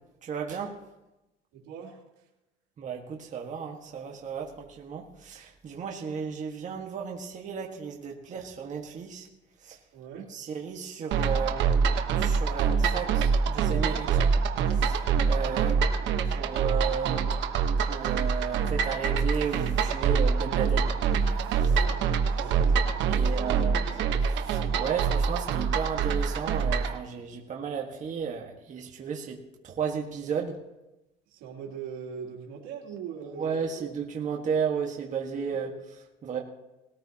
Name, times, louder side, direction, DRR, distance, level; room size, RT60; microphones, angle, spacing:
voice 1, 0.2-0.8 2.8-9.3 9.6-9.8 10.3-11.8 12.1-14.4 14.7-15.7 16.3-17.3 17.8-20.9 21.6-21.7 23.1-23.8 24.3-30.6 33.4-36.4, right 7 dB, 40° right, 0 dB, 1.6 m, -34 dB
voice 2, 1.5-2.3 9.9-10.3 15.4-15.9 21.7-22.8 23.1-23.9 31.3-33.5 33.8-33.9 35.5-35.6, right 7 dB, 85° right, -1 dB, 3.0 m, -41 dB
sound 1, 11.1-27.0, right 6 dB, 70° right, 1.2 m, -25 dB
19.5 x 14.0 x 2.9 m, 0.98 s
cardioid pair, 115°, 20 cm